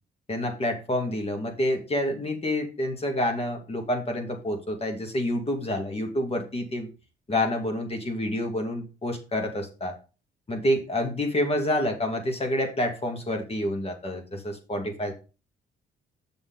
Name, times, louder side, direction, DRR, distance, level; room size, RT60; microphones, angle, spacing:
voice 1, 0.3-6.9 7.3-9.9 10.5-15.1, left 1 dB, 30° left, 4 dB, 2.2 m, -28 dB
6.8 x 6.6 x 4.0 m, 0.33 s
cardioid pair, 90°, 20 cm